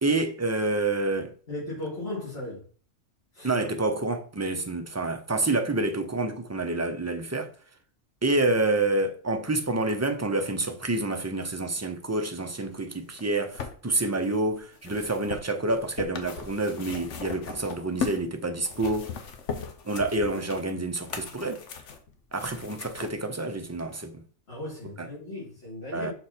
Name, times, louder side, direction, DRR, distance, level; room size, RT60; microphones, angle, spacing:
voice 1, 0.0-1.3 3.4-7.5 8.2-19.1 19.8-21.6 22.3-24.2 25.0-25.1 25.9-26.1, right 2 dB, 15° right, 0.6 m, -28 dB
voice 2, 1.5-2.6 3.3-3.5 24.5-26.1, left 2 dB, 60° left, 3.2 m, -36 dB
sound 1, 13.1-18.3 18.6-23.1 23.9-24.0, left 6 dB, 80° left, 1.2 m, -38 dB
6.5 x 4.2 x 4.4 m
omnidirectional pair, 1.2 m